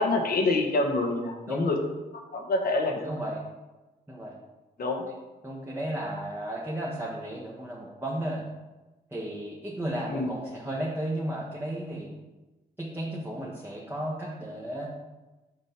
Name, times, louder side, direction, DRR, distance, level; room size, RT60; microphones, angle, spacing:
voice 1, 0.0-1.8 2.3-3.1 4.8-5.0 10.1-10.3, left 2 dB, 65° left, 3 dB, 1.3 m, -26 dB
voice 2, 3.0-3.4 4.1-4.4 5.4-8.4 9.1-12.1 12.8-14.9, right 1 dB, 15° right, -4 dB, 1.4 m, -34 dB
6.3 x 5.2 x 4.5 m, 1.1 s
cardioid pair, 70°, 17 cm